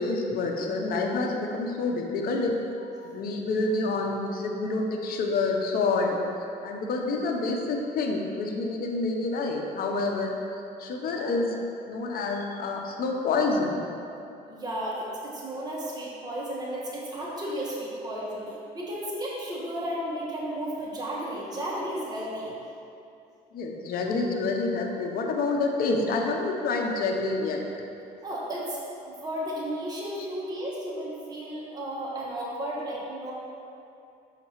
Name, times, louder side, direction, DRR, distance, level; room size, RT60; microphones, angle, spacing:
voice 1, 0.0-6.2 6.6-10.4 10.8-11.5 11.9-13.8 23.5-27.6 32.6-32.7, left 3 dB, 60° left, 2 dB, 0.8 m, -28 dB
voice 2, 11.2-11.6 14.4-22.5 28.2-28.8 29.1-33.3, right 1 dB, 25° right, -6 dB, 1.3 m, -34 dB
6.5 x 5.3 x 3.1 m, 2.7 s
cardioid pair, 110°, 17 cm